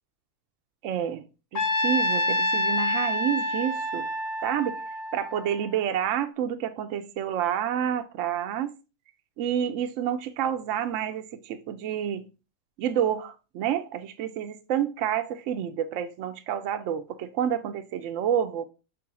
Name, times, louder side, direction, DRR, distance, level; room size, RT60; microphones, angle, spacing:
voice 1, 0.8-1.2 1.5-4.1 4.4-4.8 5.1-8.7 9.4-12.2 12.8-18.7, right 9 dB, 70° right, 0.9 m, -29 dB
Trumpet, 1.6-5.8, left 1 dB, 55° left, 1.1 m, -27 dB
6.1 x 3.5 x 4.7 m
omnidirectional pair, 1.5 m